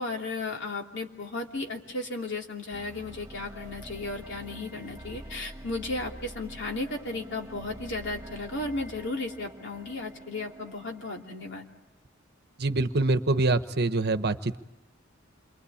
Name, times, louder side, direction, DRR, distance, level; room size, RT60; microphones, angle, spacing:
voice 1, 0.0-11.7, left 2 dB, 65° left, 2 dB, 2.9 m, -35 dB
sound 1, 2.7-11.8, right 1 dB, 15° right, 2.2 m, -46 dB
voice 2, 12.6-14.6, right 2 dB, 55° right, 10 dB, 1.1 m, -25 dB
28.5 x 24.0 x 8.6 m, 0.94 s
head